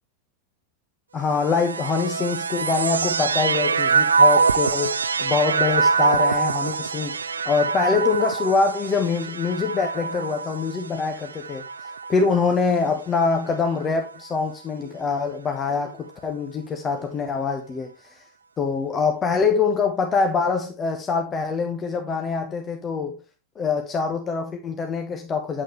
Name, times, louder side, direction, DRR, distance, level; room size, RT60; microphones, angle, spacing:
voice 1, 1.1-18.2 18.6-23.2 23.5-25.6, left 5 dB, 25° left, 1.3 m, -24 dB
sound 1, 1.3-12.8 13.5-14.3, right 5 dB, 75° right, 0.4 m, -24 dB
9.1 x 7.6 x 3.3 m
figure-of-eight pair, 90°, 0 cm